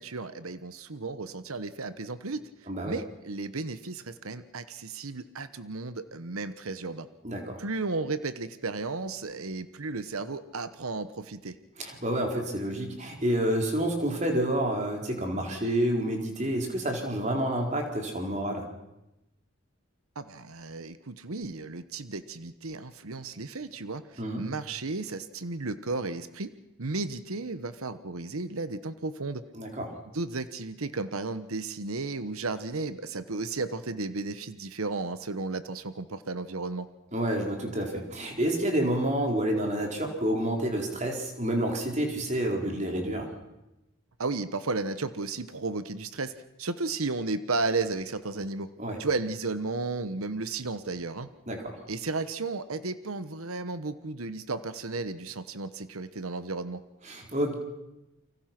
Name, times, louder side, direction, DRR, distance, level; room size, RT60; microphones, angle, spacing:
voice 1, 0.0-7.1 7.6-11.6 20.1-26.5 26.8-29.4 30.1-36.9 44.2-46.3 46.6-48.7 49.0-51.3 51.9-56.8, right 3 dB, 90° right, 12 dB, 1.1 m, -34 dB
voice 2, 7.2-7.6 11.8-18.7 24.2-24.4 29.5-29.9 37.1-43.3 48.8-49.0 51.5-51.8 57.0-57.6, right 1 dB, 35° right, 2 dB, 4.3 m, -29 dB
29.5 x 24.5 x 6.0 m, 0.95 s
head